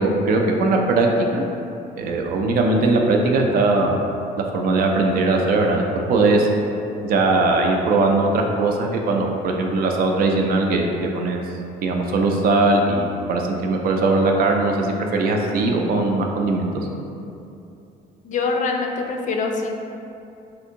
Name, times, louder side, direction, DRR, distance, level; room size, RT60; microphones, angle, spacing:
voice 1, 0.0-1.4 2.0-4.0 4.5-6.5 7.0-11.4 11.8-16.9, right 2 dB, 60° right, 2 dB, 0.4 m, -20 dB
voice 2, 18.2-19.8, left 4 dB, 50° left, 2 dB, 0.4 m, -24 dB
3.4 x 2.6 x 2.8 m, 2.7 s
cardioid pair, 110°, 17 cm